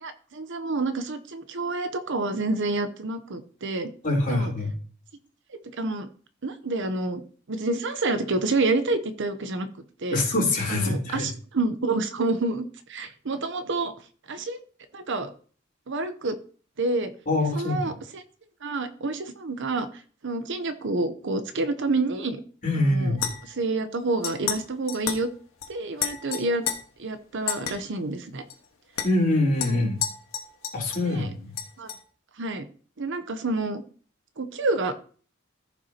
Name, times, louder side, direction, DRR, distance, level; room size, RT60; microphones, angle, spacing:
voice 1, 0.0-3.9 4.3-4.5 5.8-6.1 6.4-7.2 7.5-9.7 10.0-10.2 10.7-13.9 14.3-14.6 14.9-15.3 15.9-16.4 16.8-17.1 17.5-18.2 18.6-19.9 20.2-22.4 22.7-23.2 23.5-25.3 25.7-26.6 27.0-28.4 29.7-29.8 31.0-31.3 31.8-31.9 32.4-32.6 33.0-33.8 34.4-34.9, right 2 dB, 60° right, 10 dB, 0.8 m, -28 dB
voice 2, 4.0-4.7 10.1-11.3 17.3-17.9 22.6-23.2 29.0-30.0 30.7-31.5, left 2 dB, 40° left, -3 dB, 3.4 m, -24 dB
sound 1, 23.2-23.6 24.2-24.6 24.9-25.3 25.6-25.7 26.0-26.8 27.5-27.7 28.5-28.6 29.0-29.1 29.6-31.1 31.6-32.0, left 8 dB, 80° left, 1.5 m, -31 dB
14.5 x 5.8 x 2.9 m, 0.43 s
head